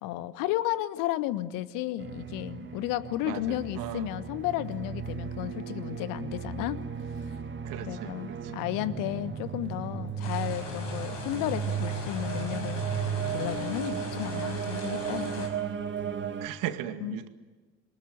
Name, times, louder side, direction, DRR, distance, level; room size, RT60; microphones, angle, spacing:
voice 1, 0.0-6.8 7.3-7.4 7.8-12.8 13.3-15.5 17.0-17.2, left 14 dB, 60° left, 16 dB, 1.3 m, -33 dB
sound 1, 2.0-16.5, right 7 dB, 30° right, 1.7 m, -35 dB
voice 2, 3.2-4.1 7.6-8.5 16.4-17.3, right 12 dB, 60° right, 9 dB, 2.1 m, -37 dB
sound 2, 8.7-13.8, left 4 dB, 25° left, 1.8 m, -44 dB
sound 3, 10.2-15.5, left 3 dB, 75° left, 5.9 m, -41 dB
27.5 x 23.0 x 9.4 m, 1.3 s
figure-of-eight pair, 55°, 38 cm